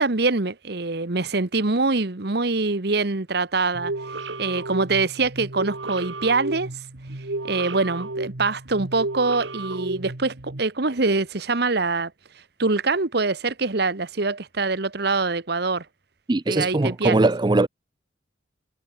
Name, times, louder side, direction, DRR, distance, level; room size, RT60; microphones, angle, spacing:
voice 1, 0.0-3.9 4.4-6.7 7.4-12.1 12.6-15.8 16.5-17.3, right 3 dB, 60° right, 1.2 m, -24 dB
sound 1, 3.7-10.6, right 2 dB, 80° right, 1.9 m, -33 dB
voice 2, 16.3-17.7, right 2 dB, 25° right, 0.5 m, -20 dB
head